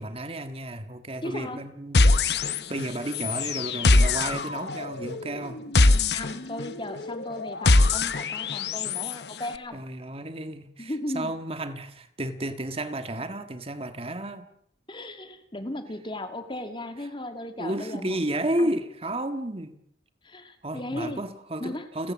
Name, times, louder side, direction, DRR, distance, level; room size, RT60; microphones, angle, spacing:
voice 1, 0.0-2.1 2.3-5.6 9.7-14.5 17.6-19.8 20.6-22.1, right 1 dB, 35° right, 9 dB, 1.7 m, -32 dB
voice 2, 1.2-1.6 6.1-9.8 10.8-11.3 14.9-18.3 18.6-18.7 20.2-21.2 21.6-21.9, left 1 dB, 25° left, 8 dB, 2.2 m, -36 dB
sound 1, 1.9-2.9 3.1-9.1, left 2 dB, 65° left, 1.0 m, -23 dB
30.0 x 16.0 x 7.5 m, 0.74 s
head